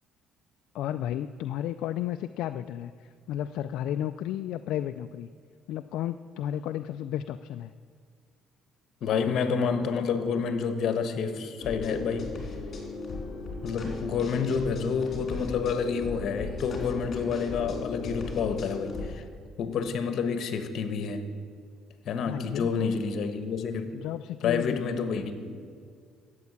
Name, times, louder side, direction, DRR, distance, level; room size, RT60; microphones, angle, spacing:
voice 1, 0.7-5.3 5.7-7.7 22.2-23.0 23.9-25.3, left 11 dB, 75° left, 10 dB, 0.4 m, -33 dB
voice 2, 9.0-12.3 13.6-19.2 19.6-21.3 22.0-24.0 24.4-25.6, left 6 dB, 55° left, 8 dB, 1.3 m, -29 dB
sound 1, 11.6-19.1, left 3 dB, 35° left, 3.7 m, -37 dB
13.0 x 8.2 x 8.4 m, 2.1 s
cardioid pair, 120°, 0 cm